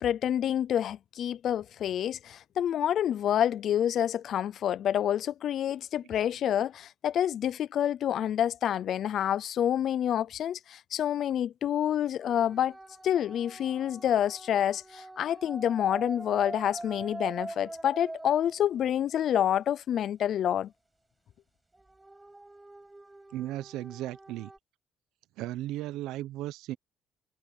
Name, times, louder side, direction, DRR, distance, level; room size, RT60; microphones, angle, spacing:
voice 1, 0.0-12.7 13.0-20.7, left 10 dB, 60° left, 0.5 m, -28 dB
sound 1, 12.2-19.1 21.7-24.6, right 2 dB, 10° right, 5.8 m, -44 dB
voice 2, 23.3-24.5 25.4-26.8, right 15 dB, 90° right, 0.8 m, -36 dB
cardioid pair, 100°, 0 cm